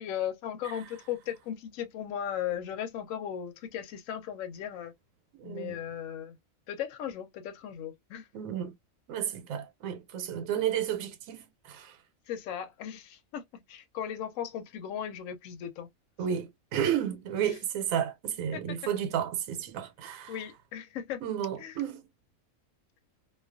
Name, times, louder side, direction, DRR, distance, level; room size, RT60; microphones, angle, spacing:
voice 1, 0.0-4.9 5.4-6.4 6.7-8.3 12.3-15.9 17.4-17.6 18.5-18.8 20.3-21.2 21.6-21.8, left 9 dB, 75° left, 1.0 m, -37 dB
voice 2, 5.3-5.8 8.3-8.7 9.1-12.0 16.2-20.3 21.2-22.0, right 9 dB, 80° right, 1.0 m, -32 dB
2.3 x 2.2 x 2.4 m
omnidirectional pair, 1.4 m